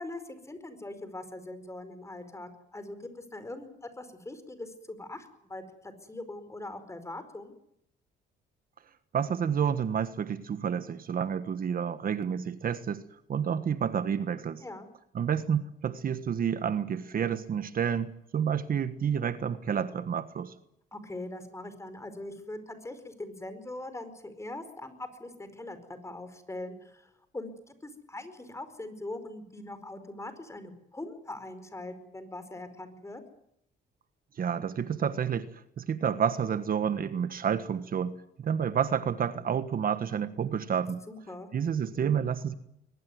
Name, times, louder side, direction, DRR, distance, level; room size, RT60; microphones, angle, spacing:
voice 1, 0.0-7.5 14.6-14.9 20.9-33.2 41.1-41.5, left 2 dB, 15° left, 11 dB, 4.8 m, -42 dB
voice 2, 9.1-13.0 13.3-14.6 15.1-20.5 34.4-41.0 41.5-42.5, right 7 dB, 50° right, 12 dB, 1.4 m, -29 dB
22.5 x 20.5 x 9.5 m, 0.78 s
cardioid pair, 105°, 19 cm